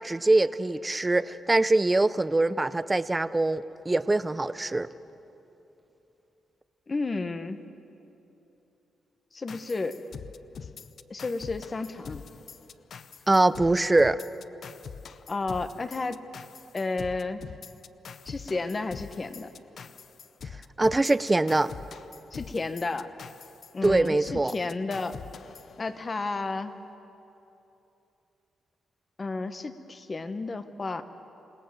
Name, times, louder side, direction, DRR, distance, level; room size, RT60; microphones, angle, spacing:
voice 1, 0.0-4.9 13.3-14.2 20.8-21.7 23.8-24.5, right 2 dB, 15° right, 15 dB, 0.6 m, -23 dB
voice 2, 6.9-7.6 9.3-10.0 11.1-12.2 15.3-16.2 16.7-17.4 18.3-19.5 22.3-23.1 23.7-25.1 25.8-26.7 29.2-31.0, left 3 dB, 30° left, 10 dB, 1.2 m, -32 dB
sound 1, 9.5-26.4, left 6 dB, 60° left, 0.7 m, -44 dB
28.0 x 18.0 x 7.6 m, 3.0 s
cardioid pair, 105°, 0 cm